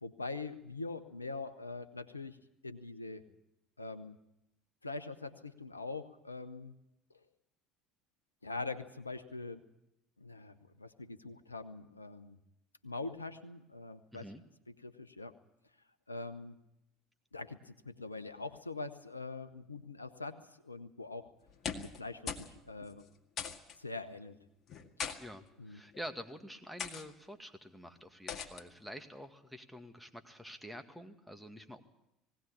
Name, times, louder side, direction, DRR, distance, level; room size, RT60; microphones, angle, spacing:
voice 1, 0.0-2.4 2.6-3.2 3.8-4.2 4.8-6.7 8.4-9.6 10.2-12.4 12.8-14.3 14.8-15.3 16.1-16.6 17.3-20.4 20.6-21.3 21.8-23.0 23.8-24.4 25.0-25.1 25.6-25.8, left 3 dB, 90° left, 11 dB, 0.9 m, -43 dB
voice 2, 14.1-14.4 25.2-31.8, equal, ahead, 5 dB, 2.1 m, -48 dB
sound 1, 21.5-22.0 22.3-22.5 22.8-22.9 23.4-23.8 24.7-25.2 25.9-26.2 26.8-27.0 28.3-28.6, left 6 dB, 40° left, 2.0 m, -40 dB
19.5 x 17.0 x 8.6 m, 0.85 s
figure-of-eight pair, 65°, 0 cm